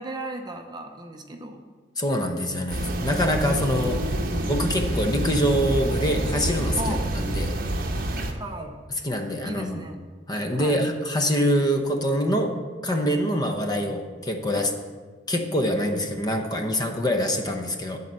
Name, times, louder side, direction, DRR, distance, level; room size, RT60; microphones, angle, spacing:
voice 1, 0.0-1.6 6.8-7.0 8.3-8.8 9.4-10.0 10.5-10.8, right 1 dB, 25° right, 4 dB, 0.7 m, -35 dB
voice 2, 2.0-4.0 4.5-7.5 9.0-9.8 10.3-12.5 12.8-14.7 15.3-18.0, equal, 20° left, 4 dB, 0.9 m, -25 dB
sound 1, 2.7-8.3, right 1 dB, 55° right, 1.0 m, -27 dB
12.0 x 4.2 x 7.5 m, 1.5 s
head